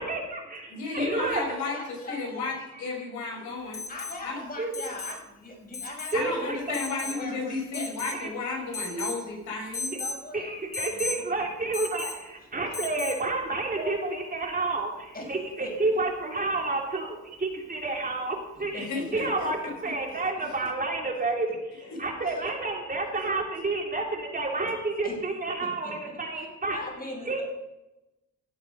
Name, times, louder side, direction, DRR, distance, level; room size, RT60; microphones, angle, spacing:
voice 1, 0.0-1.5 4.6-4.7 6.1-6.6 8.1-8.3 10.3-26.8 27.3-27.4, right 3 dB, 30° right, 0 dB, 3.2 m, -30 dB
voice 2, 0.7-3.8 4.2-4.4 6.1-10.0 18.8-19.7 21.9-22.3, left 3 dB, 75° left, -1 dB, 6.0 m, -33 dB
voice 3, 1.7-2.5 3.9-6.5 7.0-8.3 10.0-10.5 10.9-11.0 15.1-15.3 15.6-15.7 18.5-19.2 19.6-19.7 20.1-20.4 22.3-22.5 25.0-25.2 25.6-27.4, left 2 dB, 30° left, 1 dB, 5.7 m, -41 dB
Alarm, 3.7-4.2 4.7-5.2 5.7-6.2 6.7-7.2 7.7-8.2 8.7-9.2 9.7-10.2 10.7-11.2 11.7-12.2 12.7-13.2 15.0-15.1, left 3 dB, 10° left, 1.8 m, -35 dB
16.5 x 8.2 x 5.4 m, 0.95 s
cardioid pair, 90°, 30 cm